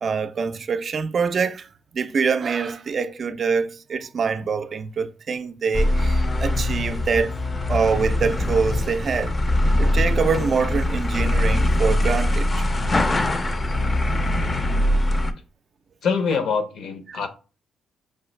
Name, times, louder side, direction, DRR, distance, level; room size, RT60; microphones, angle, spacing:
voice 1, 0.0-1.7 1.9-7.3 7.7-9.3 9.8-12.6 17.1-17.2, right 5 dB, 45° right, 0.3 m, -24 dB
sound 1, 5.7-15.3, left 1 dB, 30° left, 0.4 m, -22 dB
voice 2, 16.0-17.3, left 5 dB, 70° left, 0.6 m, -24 dB
4.7 x 2.4 x 3.1 m
cardioid pair, 90°, 0 cm